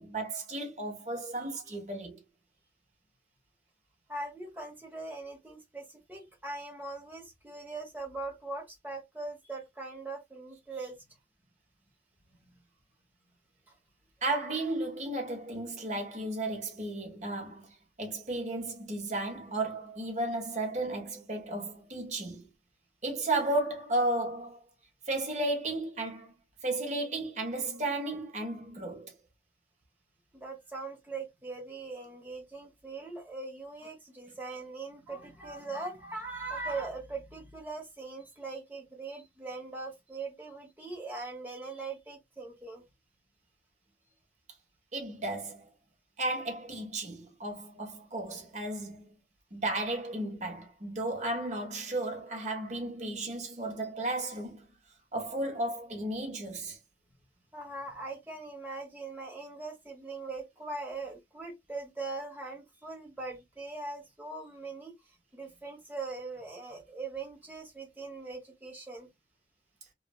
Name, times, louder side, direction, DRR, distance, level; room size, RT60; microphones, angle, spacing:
voice 1, 0.0-2.2 14.2-22.5 23.0-24.6 25.1-26.3 26.6-29.1 44.9-45.7 46.2-49.1 49.5-54.7 55.1-56.8, right 2 dB, 40° right, 1.0 m, -34 dB
voice 2, 1.4-1.8 4.1-11.2 30.3-42.8 57.5-64.9 65.3-69.1, right 3 dB, 10° right, 1.0 m, -41 dB
3.1 x 2.4 x 2.3 m
head